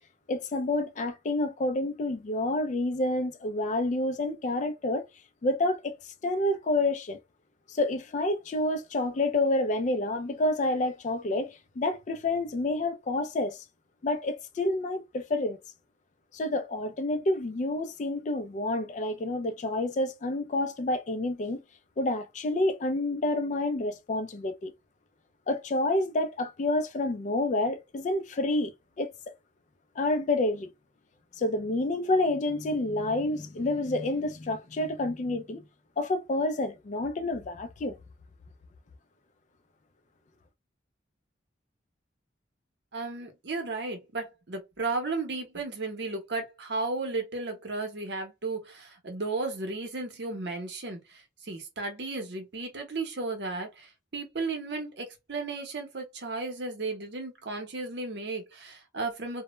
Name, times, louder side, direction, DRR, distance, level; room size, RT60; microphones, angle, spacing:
voice 1, 0.3-5.0 5.4-6.0 6.2-7.2 7.7-13.6 14.0-15.6 16.3-21.6 22.0-24.7 25.5-28.7 29.0-29.1 30.0-30.7 31.4-35.6 36.0-38.0, left 2 dB, 40° left, 0.3 m, -28 dB
voice 2, 42.9-59.4, right 3 dB, 60° right, 0.7 m, -34 dB
2.1 x 2.1 x 3.0 m
head